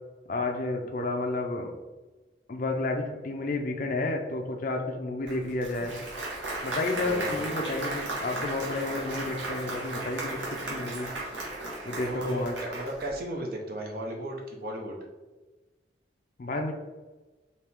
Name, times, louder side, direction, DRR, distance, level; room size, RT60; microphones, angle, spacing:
voice 1, 0.3-1.7 2.5-6.0 6.6-10.4 10.6-11.1 11.8-12.5 16.4-16.7, left 2 dB, 45° left, 2 dB, 0.4 m, -31 dB
Applause, 5.3-13.2, right 2 dB, 80° right, 1.4 m, -35 dB
voice 2, 7.0-7.5 12.0-15.0, right 1 dB, 50° right, 1 dB, 0.7 m, -35 dB
4.4 x 2.8 x 3.5 m, 1.2 s
head